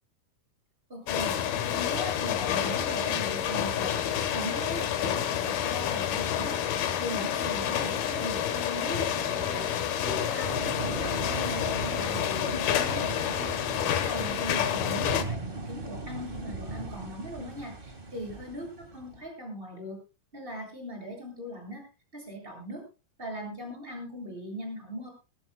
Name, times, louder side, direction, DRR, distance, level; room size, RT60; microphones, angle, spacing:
voice 1, 0.9-1.3 1.7-4.0 4.3-6.6 7.0-9.7 10.0-13.0 14.0-20.0 20.3-21.8 22.1-22.8 23.2-25.1, equal, 15° right, 1 dB, 7.8 m, -39 dB
sound 1, 1.1-15.2, left 9 dB, 90° left, 3.3 m, -29 dB
sound 2, 10.4-19.2, right 2 dB, 35° right, 0.9 m, -38 dB
22.0 x 17.5 x 2.3 m, 0.32 s
omnidirectional pair, 4.2 m